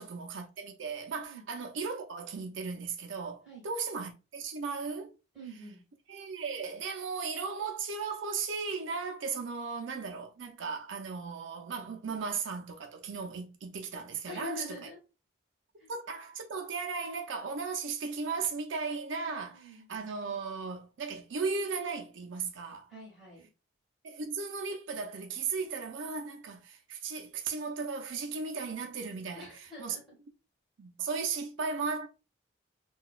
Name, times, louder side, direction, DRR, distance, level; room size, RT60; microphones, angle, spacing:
voice 1, 0.0-5.1 6.1-14.8 15.9-22.9 24.0-30.0 30.8-32.1, right 5 dB, 75° right, 0.5 m, -36 dB
voice 2, 5.3-5.8 14.3-15.0 15.8-15.9 19.5-19.9 22.9-23.5 29.3-30.0, left 2 dB, 5° right, 1.6 m, -45 dB
3.8 x 2.3 x 2.3 m
head